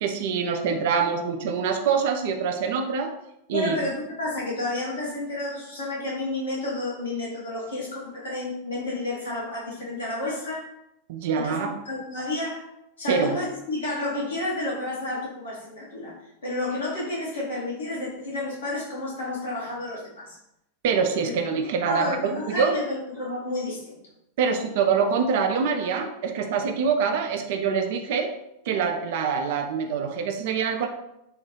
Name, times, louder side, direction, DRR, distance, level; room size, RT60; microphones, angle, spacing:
voice 1, 0.0-3.1 3.5-3.8 11.1-11.7 13.1-13.3 20.8-22.7 24.4-28.3 28.7-30.9, right 6 dB, 50° right, 5 dB, 0.4 m, -25 dB
voice 2, 3.5-10.6 11.3-12.6 13.0-16.1 16.4-20.4 21.2-21.6 21.9-24.0, left 2 dB, 65° left, -5 dB, 1.2 m, -31 dB
3.5 x 2.2 x 3.1 m, 0.82 s
figure-of-eight pair, 90°, 0 cm